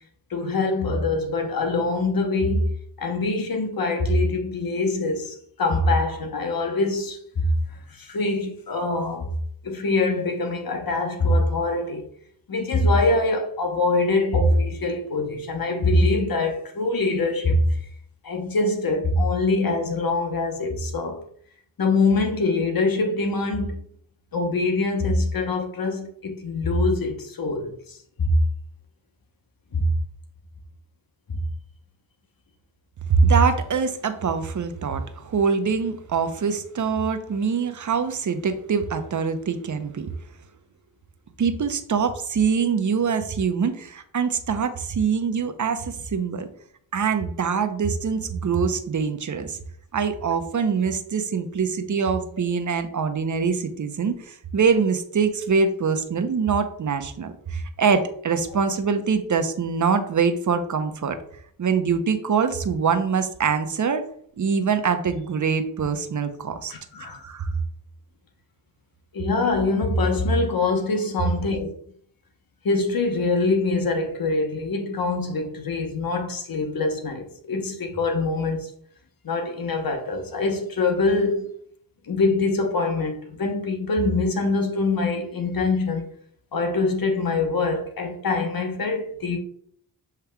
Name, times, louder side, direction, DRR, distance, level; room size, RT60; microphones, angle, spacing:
voice 1, 0.3-7.5 7.9-9.3 9.6-12.1 12.5-17.7 18.2-21.2 21.8-23.8 24.3-28.4 29.7-29.9 31.3-31.4 66.7-67.2 69.1-71.7 72.6-78.7 79.2-81.4 82.1-86.1 86.5-89.4, left 2 dB, 45° left, 1.0 m, -24 dB
voice 2, 33.1-40.1 41.4-46.5 46.9-49.6 49.9-61.2 61.6-64.0 64.4-66.7 67.0-67.5, right 5 dB, 40° right, 0.7 m, -24 dB
7.0 x 3.3 x 2.3 m
cardioid pair, 50°, 48 cm